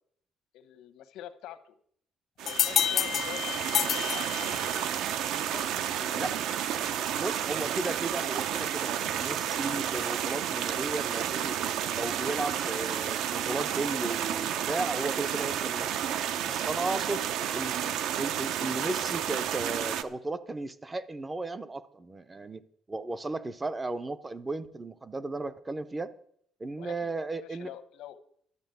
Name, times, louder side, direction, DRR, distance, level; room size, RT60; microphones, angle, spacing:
voice 1, 0.5-1.8 2.4-4.5 5.3-6.4 17.1-17.2 26.8-27.1 27.4-28.2, left 11 dB, 85° left, 11 dB, 1.1 m, -46 dB
sound 1, 2.4-20.0, right 9 dB, 65° right, 0.7 m, -31 dB
sound 2, 2.5-5.0, left 10 dB, 45° left, 0.4 m, -29 dB
sound 3, 4.2-9.2 9.6-12.1 12.4-14.7, right 6 dB, 50° right, 1.3 m, -50 dB
voice 2, 7.1-11.6 11.9-16.0 16.4-17.2 17.5-17.9 18.2-22.6 22.9-26.1 26.6-27.7, right 2 dB, 15° right, 13 dB, 0.5 m, -35 dB
12.0 x 7.1 x 9.2 m, 0.66 s
cardioid pair, 180°, 0 cm